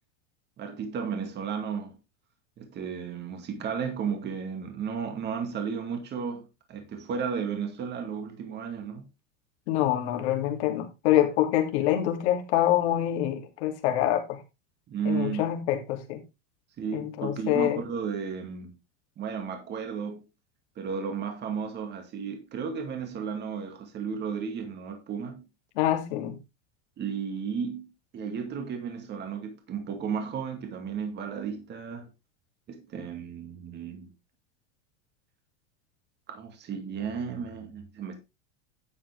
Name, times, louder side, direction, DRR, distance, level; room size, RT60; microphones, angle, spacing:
voice 1, 0.6-2.0 2.6-6.4 6.7-9.1 14.9-15.5 16.8-18.8 19.2-20.2 20.8-25.5 27.0-32.1 32.7-34.1 36.3-38.2, right 6 dB, 30° right, 2.3 m, -34 dB
voice 2, 9.7-14.4 15.0-16.2 16.9-17.8 25.8-26.4, left 12 dB, 65° left, 2.9 m, -26 dB
11.0 x 7.5 x 3.6 m
supercardioid pair, 145°, 36 cm